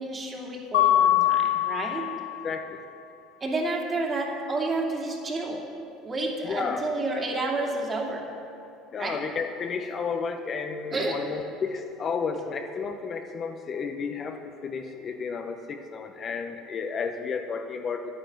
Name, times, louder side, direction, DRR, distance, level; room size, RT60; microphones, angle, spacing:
voice 1, 0.0-2.1 3.4-5.6 6.0-8.3 9.0-9.2 10.9-11.2 14.7-14.9, right 2 dB, 30° right, -1 dB, 2.6 m, -30 dB
Mallet percussion, 0.7-2.6, left 12 dB, 90° left, 0.9 m, -23 dB
voice 2, 2.4-2.8 6.4-6.8 8.9-18.1, left 5 dB, 40° left, 5 dB, 0.9 m, -32 dB
10.0 x 9.7 x 7.4 m, 2.6 s
supercardioid pair, 95°, 0 cm